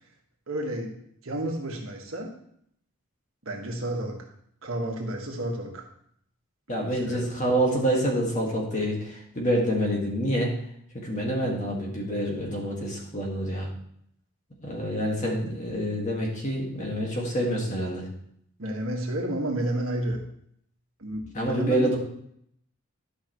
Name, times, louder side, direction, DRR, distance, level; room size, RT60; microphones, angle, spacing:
voice 1, 0.5-0.9 1.2-2.3 3.4-4.3 4.6-5.8 6.9-7.3 18.6-20.2 21.0-22.0, right 1 dB, 70° right, 0 dB, 1.6 m, -31 dB
voice 2, 6.7-10.5 10.9-13.7 14.6-18.1 21.3-22.0, equal, 35° left, -1 dB, 1.8 m, -27 dB
11.5 x 5.7 x 3.1 m, 0.69 s
head